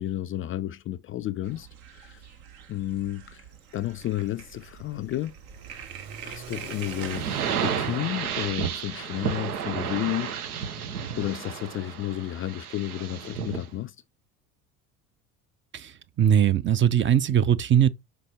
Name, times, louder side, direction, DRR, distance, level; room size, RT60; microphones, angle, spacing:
voice 1, 0.0-2.3 2.7-3.4 3.7-5.4 6.2-7.3 7.6-10.7 11.2-14.0, left 14 dB, 30° left, 0.4 m, -32 dB
sound 1, 1.4-7.2, right 8 dB, 70° right, 1.5 m, -44 dB
Car / Accelerating revving vroom, 3.5-9.7, right 6 dB, 55° right, 3.3 m, -46 dB
sound 2, 7.0-13.7, right 7 dB, 85° right, 0.8 m, -32 dB
voice 2, 15.7-17.9, right 9 dB, 25° right, 0.5 m, -21 dB
5.8 x 4.7 x 4.1 m
hypercardioid pair, 70°, 44 cm